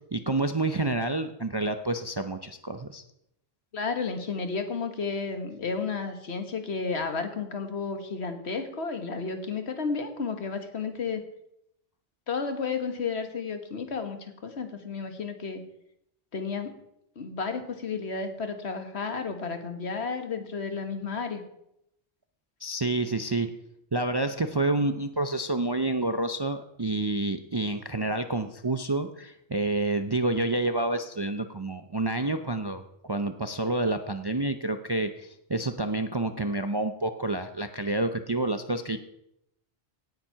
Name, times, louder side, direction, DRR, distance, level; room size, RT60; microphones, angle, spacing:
voice 1, 0.1-3.0 22.6-23.5 23.9-39.0, right 2 dB, 30° right, 8 dB, 0.5 m, -28 dB
voice 2, 3.7-11.2 12.3-15.6 16.3-16.7 17.2-21.4, left 5 dB, 65° left, 7 dB, 1.7 m, -32 dB
17.5 x 7.5 x 5.7 m, 0.79 s
omnidirectional pair, 1.2 m